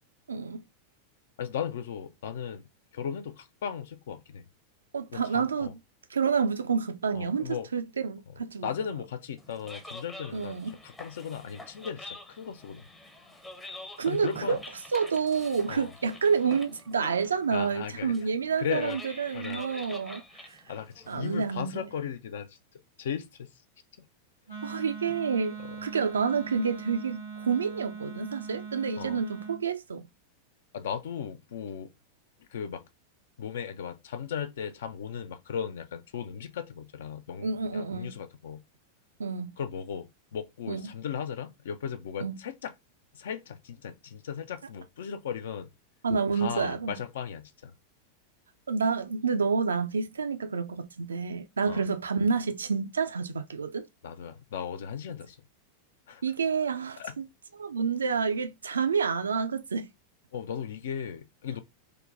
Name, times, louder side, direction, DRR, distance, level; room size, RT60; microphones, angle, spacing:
voice 1, 0.3-0.6 4.9-5.8 6.1-8.7 10.3-10.8 14.0-14.6 14.9-20.6 21.1-21.8 24.6-25.6 25.8-30.1 37.4-38.1 39.2-39.5 40.7-40.9 42.2-42.4 46.0-47.0 48.7-53.9 56.2-57.3 57.6-59.9, right 5 dB, 70° right, 0.3 m, -29 dB
voice 2, 1.4-4.5 5.1-5.7 7.1-7.7 8.3-8.4 8.6-10.6 10.8-12.9 14.1-14.6 15.7-15.9 17.5-18.1 18.6-19.0 19.3-19.7 20.7-22.6 23.0-23.5 24.0-24.1 25.1-25.2 25.6-25.8 29.0-29.2 30.7-31.9 32.5-32.8 33.4-38.6 39.6-42.7 43.1-45.7 46.3-47.7 51.7-51.8 54.0-55.4 56.1-56.2 57.0-57.2 60.3-61.6, left 8 dB, 60° left, 0.4 m, -36 dB
sound 1, 9.4-21.6, left 2 dB, 10° left, 0.6 m, -46 dB
Wind instrument woodwind instrument, 24.5-29.6, right 5 dB, 90° left, 1.1 m, -41 dB
3.7 x 2.2 x 2.4 m
figure-of-eight pair, 90°, 0 cm